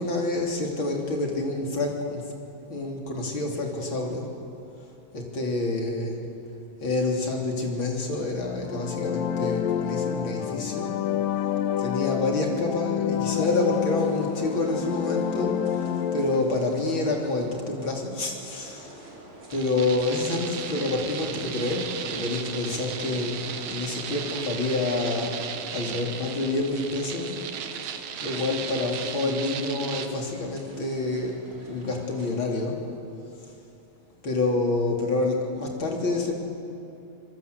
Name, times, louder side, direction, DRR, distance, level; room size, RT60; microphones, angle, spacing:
voice 1, 0.0-2.3 2.7-4.3 5.1-6.2 6.8-10.9 11.8-18.9 19.5-25.4 25.7-27.4 28.2-31.4 31.7-32.8 34.2-36.3, left 2 dB, 35° left, 0 dB, 3.8 m, -28 dB
sound 1, 8.5-16.4, left 9 dB, 85° left, 2.7 m, -28 dB
sound 2, 13.4-32.3, right 1 dB, 40° right, 4.5 m, -47 dB
sound 3, 19.5-30.1, right 8 dB, 80° right, 3.0 m, -36 dB
25.5 x 22.5 x 8.3 m, 2.7 s
omnidirectional pair, 3.8 m